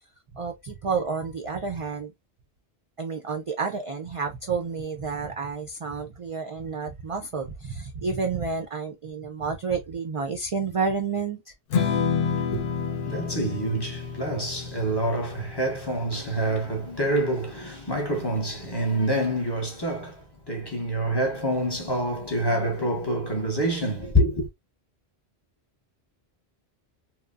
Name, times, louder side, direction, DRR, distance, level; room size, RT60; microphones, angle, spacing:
voice 1, 0.3-2.1 3.0-11.5, right 5 dB, 60° right, 0.3 m, -30 dB
Strum, 11.7-18.0, left 6 dB, 65° left, 0.7 m, -30 dB
voice 2, 12.2-24.5, right 1 dB, 25° left, 0.7 m, -27 dB
2.9 x 2.1 x 2.3 m
omnidirectional pair, 1.1 m